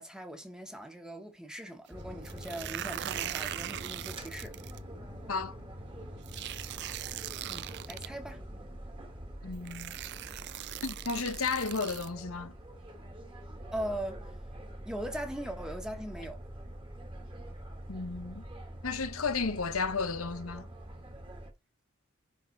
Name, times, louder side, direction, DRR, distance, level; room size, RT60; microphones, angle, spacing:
voice 1, 0.0-4.6 7.5-8.4 13.7-14.2 14.8-16.4, right 1 dB, 5° right, 1.2 m, -40 dB
sound 1, 1.9-21.5, equal, 25° right, 1.7 m, -45 dB
sound 2, 2.2-4.8 6.3-8.1 9.1-9.2 9.6-12.1, right 12 dB, 55° right, 0.4 m, -40 dB
voice 2, 9.4-10.0 10.8-12.5 17.9-18.4 18.8-20.7, left 4 dB, 85° left, 1.0 m, -33 dB
10.5 x 3.7 x 4.1 m
head